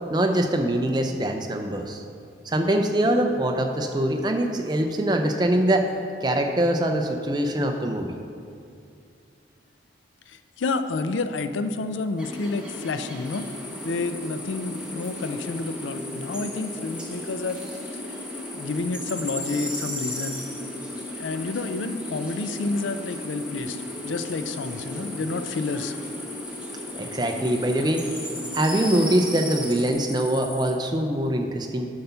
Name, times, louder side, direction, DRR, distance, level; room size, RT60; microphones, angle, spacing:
voice 1, 0.1-2.0 2.5-5.9 6.2-8.2 26.9-28.0 28.5-31.9, right 1 dB, 25° right, 4 dB, 0.5 m, -23 dB
voice 2, 10.3-13.5 13.8-17.6 18.5-20.4 21.2-25.9, left 3 dB, 90° left, 10 dB, 0.4 m, -29 dB
sound 1, 12.2-29.9, equal, 5° right, 0.8 m, -36 dB
sound 2, 13.2-30.7, left 3 dB, 25° left, 0.9 m, -41 dB
7.6 x 5.7 x 5.6 m, 2.4 s
head